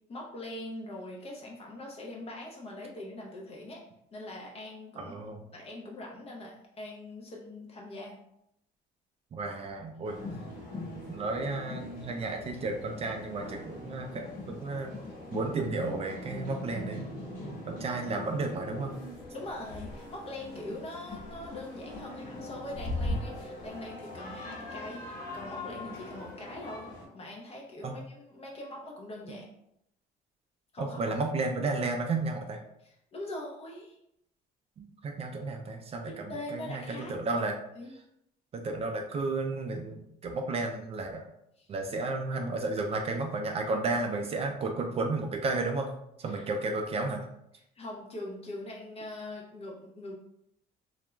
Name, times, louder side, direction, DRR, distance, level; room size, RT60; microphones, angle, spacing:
voice 1, 0.1-3.8 4.1-5.2 5.5-8.2 19.3-26.9 27.1-29.5 30.7-31.2 32.8-34.0 36.3-37.5 37.8-37.9 41.6-41.7 46.2-46.5 47.5-50.2, left 1 dB, 35° left, -1 dB, 0.5 m, -42 dB
voice 2, 5.0-5.5 9.3-10.2 10.9-14.9 15.3-17.1 17.7-18.9 27.8-27.9 29.3-29.4 30.8-32.6 34.8-37.5 38.5-41.3 41.7-45.9 46.2-47.2, right 3 dB, 35° right, 3 dB, 0.3 m, -33 dB
sound 1, 10.0-27.0, left 1 dB, 55° left, 1.2 m, -40 dB
2.3 x 2.1 x 3.0 m, 0.78 s
cardioid pair, 110°, 17 cm